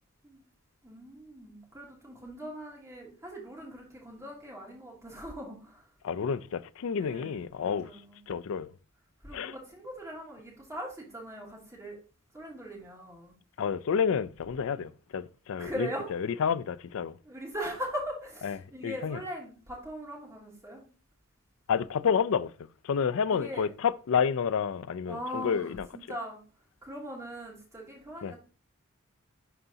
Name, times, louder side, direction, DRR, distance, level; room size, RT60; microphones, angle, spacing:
voice 1, 0.8-5.9 7.0-8.2 9.2-12.0 12.3-13.4 15.6-16.1 17.2-20.8 23.3-23.7 25.1-26.4 26.8-28.4, equal, 15° right, 2.3 m, -40 dB
voice 2, 6.0-7.9 8.3-8.7 9.3-9.5 13.6-15.9 16.4-17.2 18.4-18.5 18.8-19.2 21.7-22.5 22.9-25.9 28.2-28.3, left 6 dB, 65° left, 0.4 m, -29 dB
11.0 x 4.0 x 2.7 m
head